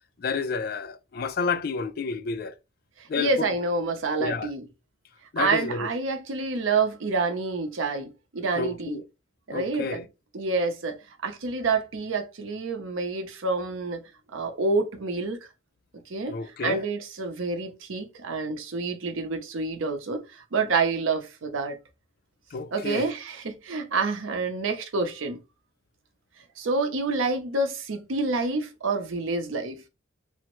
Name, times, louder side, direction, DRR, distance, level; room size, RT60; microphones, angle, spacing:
voice 1, 0.2-2.5 3.1-3.5 4.2-4.5 5.3-5.9 8.5-9.0 9.5-10.0 16.3-16.9 22.5-23.1, left 4 dB, 50° left, 0.3 m, -30 dB
voice 2, 3.0-4.7 5.4-9.0 9.5-10.1 10.3-14.0 14.3-15.4 16.1-21.8 22.7-25.4 26.6-29.8, right 3 dB, 85° right, 0.6 m, -28 dB
3.4 x 2.1 x 2.9 m
head